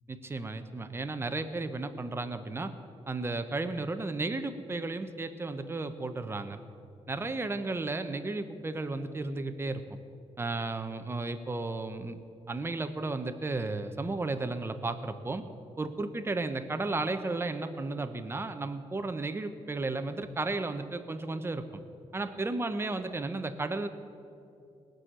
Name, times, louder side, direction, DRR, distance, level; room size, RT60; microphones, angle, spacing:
voice 1, 0.1-2.7 3.1-6.6 7.1-10.0 10.4-12.2 12.5-15.4 15.8-21.8 22.1-23.9, right 3 dB, 20° right, 8 dB, 1.0 m, -34 dB
19.0 x 6.5 x 9.0 m, 2.7 s
cardioid pair, 105°, 12 cm